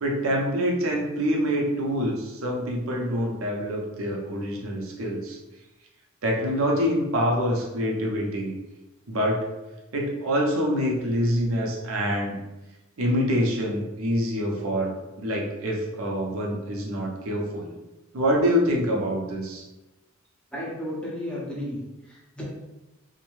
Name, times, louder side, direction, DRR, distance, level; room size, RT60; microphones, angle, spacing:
voice 1, 0.0-5.4 6.2-8.6 9.1-9.5 9.9-12.3 13.0-17.7 18.1-19.6, equal, 80° right, -1 dB, 0.6 m, -26 dB
voice 2, 20.5-22.4, left 1 dB, 5° left, -6 dB, 0.6 m, -34 dB
2.6 x 2.1 x 3.0 m, 1.0 s
head